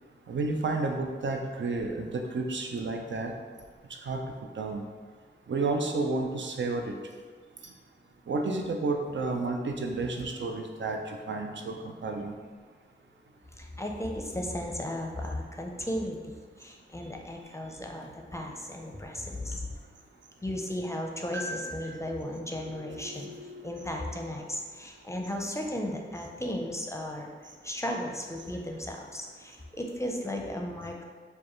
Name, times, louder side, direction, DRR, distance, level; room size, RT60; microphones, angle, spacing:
voice 1, 0.3-3.3 4.1-4.2 4.6-4.9 5.5-6.9 8.3-12.4 21.3-21.8 22.3-24.2, right 3 dB, 70° right, 3 dB, 0.5 m, -32 dB
voice 2, 13.6-16.2 16.6-19.7 20.4-23.3 23.6-27.3 27.6-31.0, left 1 dB, 15° left, 1 dB, 0.5 m, -35 dB
5.0 x 2.3 x 3.0 m, 1.5 s
wide cardioid pair, 50°, 20 cm